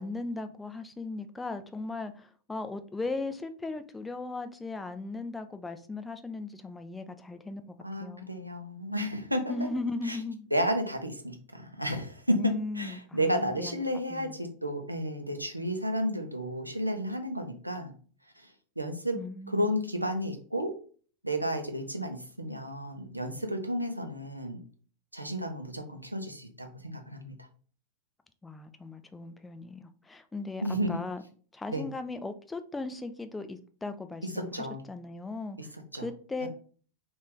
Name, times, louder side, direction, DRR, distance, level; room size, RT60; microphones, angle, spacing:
voice 1, 0.0-8.3 9.5-10.5 12.4-13.8 14.1-14.4 19.1-19.7 28.4-31.2 31.5-35.6 35.9-36.5, left 3 dB, 10° left, 0.3 m, -37 dB
voice 2, 7.8-9.5 10.0-10.2 10.5-17.9 18.4-18.5 18.8-19.2 19.5-20.7 21.2-24.6 25.1-27.4 30.6-31.0 31.7-31.8 34.3-34.8 35.6-35.7 35.9-36.0 36.4-36.5, equal, 85° right, 0.5 m, -32 dB
3.0 x 2.6 x 3.6 m
figure-of-eight pair, 90°, 0 cm